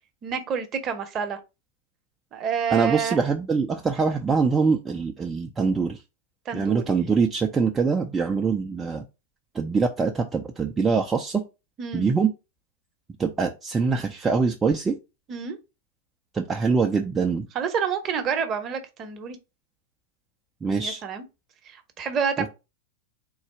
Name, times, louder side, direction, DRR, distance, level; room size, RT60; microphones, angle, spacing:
voice 1, 0.2-1.4 2.3-3.2 6.5-7.0 11.8-12.1 15.3-15.6 17.5-19.4 20.8-21.2 21.7-22.5, right 7 dB, 30° right, 0.8 m, -28 dB
voice 2, 2.7-6.0 6.5-9.0 9.5-11.4 11.9-12.3 13.2-15.0 16.3-17.5 20.6-21.0, right 5 dB, 15° right, 0.4 m, -23 dB
3.8 x 2.3 x 4.5 m
figure-of-eight pair, 90°, 0 cm